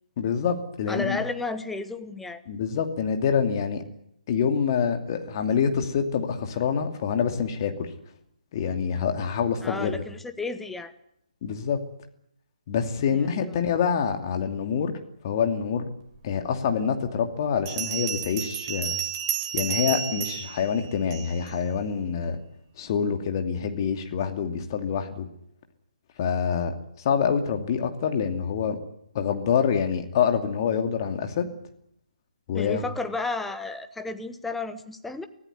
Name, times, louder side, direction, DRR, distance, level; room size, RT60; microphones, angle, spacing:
voice 1, 0.2-1.2 2.5-3.8 4.3-7.9 8.5-10.0 11.4-11.8 12.7-14.9 15.2-15.9 16.2-19.0 19.5-22.4 22.8-25.3 26.2-26.7 27.0-28.8 29.1-31.5 32.5-32.8, left 7 dB, 30° left, 5 dB, 2.6 m, -26 dB
voice 2, 0.9-2.4 9.6-10.9 13.1-13.5 32.5-35.3, left 3 dB, 5° left, 8 dB, 1.1 m, -32 dB
Bell, 16.4-16.5 17.7-21.5, right 10 dB, 25° right, 2.3 m, -31 dB
24.0 x 16.5 x 9.6 m, 0.75 s
figure-of-eight pair, 140°, 4 cm